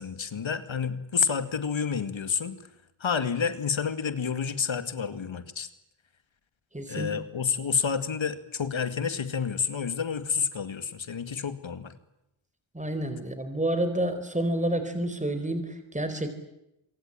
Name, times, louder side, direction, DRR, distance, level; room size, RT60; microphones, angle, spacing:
voice 1, 0.0-2.5 3.0-5.7 6.9-11.9, left 6 dB, 65° left, 11 dB, 2.3 m, -29 dB
voice 2, 6.7-7.1 12.7-16.3, right 1 dB, 15° right, 9 dB, 4.3 m, -29 dB
26.5 x 24.0 x 8.8 m, 0.86 s
cardioid pair, 70°, 50 cm